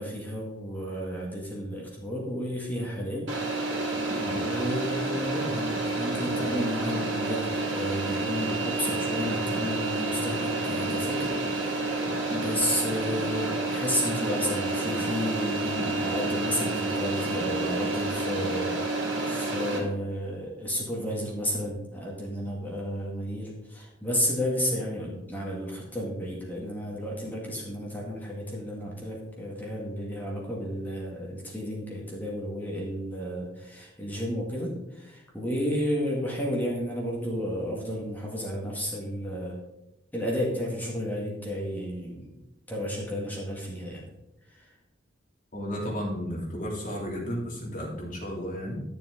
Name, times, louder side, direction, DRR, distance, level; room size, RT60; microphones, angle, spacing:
voice 1, 0.0-4.0 4.3-11.9 12.2-39.6 40.1-42.4 42.7-44.1 44.5-44.7, equal, 10° left, -3 dB, 1.9 m, -32 dB
sound 1, 3.3-19.8, right 2 dB, 70° right, 2.4 m, -29 dB
voice 2, 4.2-4.5 45.5-48.8, equal, 45° left, -3 dB, 2.7 m, -33 dB
11.5 x 7.0 x 3.8 m, 0.92 s
head